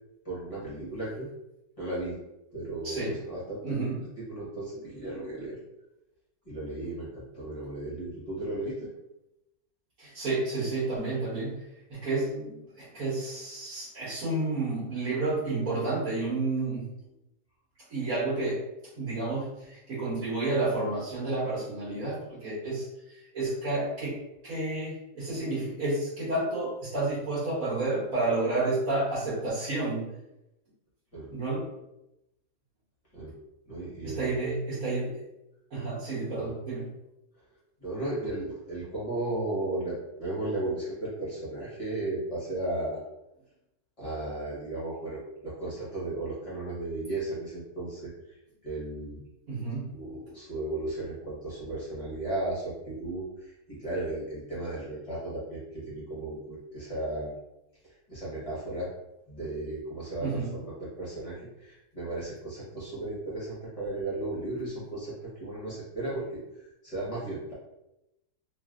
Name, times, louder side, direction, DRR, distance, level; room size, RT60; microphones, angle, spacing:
voice 1, 0.2-1.3 1.8-2.2 2.5-3.9 4.2-5.6 6.4-8.9 31.1-31.3 33.1-33.3 33.7-34.4 36.3-36.5 37.8-43.0 44.0-48.4 48.6-49.2 49.9-57.3 57.8-58.9 59.3-67.5, right 2 dB, 25° left, -8 dB, 0.8 m, -35 dB
voice 2, 2.8-3.2 3.6-4.0 10.0-11.6 11.9-16.9 17.9-18.6 19.0-24.2 24.4-30.1 31.3-31.7 34.0-35.2 35.7-36.9 49.5-49.9 60.2-60.5, right 2 dB, 55° right, -9 dB, 1.3 m, -30 dB
3.1 x 2.5 x 2.4 m, 0.90 s
omnidirectional pair, 1.9 m